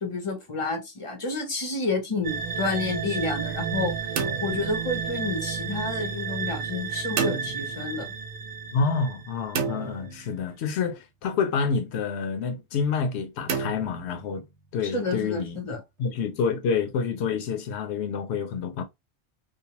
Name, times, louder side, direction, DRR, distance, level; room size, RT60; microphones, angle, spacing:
voice 1, 0.0-4.0 4.4-8.1 14.8-15.8, left 3 dB, 40° left, 0.5 m, -30 dB
sound 1, 2.2-9.8, right 6 dB, 50° right, 0.6 m, -32 dB
sound 2, 4.2-5.5 7.2-8.2 9.5-10.8 13.5-14.7, right 6 dB, 85° right, 0.9 m, -32 dB
voice 2, 8.7-14.4 14.7-15.6 16.0-18.8, left 5 dB, 75° left, 0.8 m, -28 dB
2.6 x 2.0 x 2.8 m
omnidirectional pair, 1.2 m